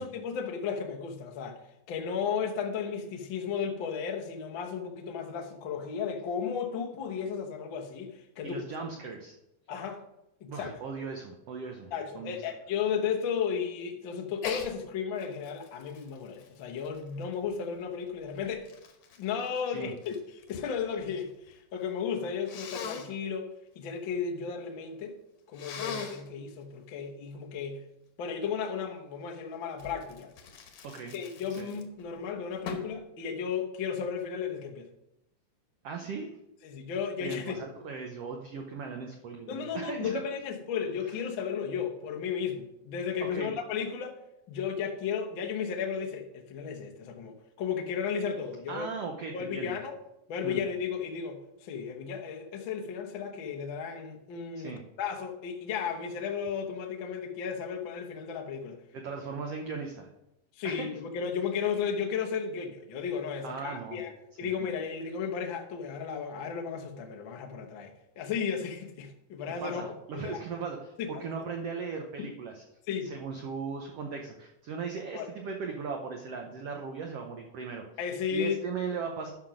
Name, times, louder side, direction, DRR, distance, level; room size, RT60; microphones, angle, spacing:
voice 1, 0.0-1.6 1.9-8.6 9.7-10.0 10.4-10.8 11.9-18.7 19.2-25.2 25.5-27.8 28.2-30.3 31.1-34.9 36.6-37.6 39.5-44.2 44.5-48.9 49.3-49.9 50.3-58.8 60.5-64.1 64.4-69.8 70.1-70.4 71.0-71.1 72.2-72.3 72.9-73.1 75.1-75.3 78.0-78.6, left 6 dB, 85° left, 2 dB, 1.0 m, -34 dB
voice 2, 8.4-9.3 10.5-12.4 19.7-19.9 30.8-31.1 31.6-31.7 35.8-36.4 37.2-40.2 41.1-41.2 43.2-43.5 48.7-49.8 50.4-50.6 54.6-54.8 58.9-60.1 60.6-60.9 63.4-64.0 64.4-64.5 69.6-72.6 73.0-77.9 78.3-79.3, right 5 dB, 85° right, 3 dB, 1.3 m, -38 dB
Sneeze, 14.4-14.7 15.2-17.5 18.2-20.7 21.0-21.6 22.5-23.1 25.5-26.3 29.8-32.1 32.7-33.0, left 6 dB, 65° left, 2.0 m, -41 dB
12.0 x 5.9 x 5.0 m, 0.87 s
omnidirectional pair, 4.0 m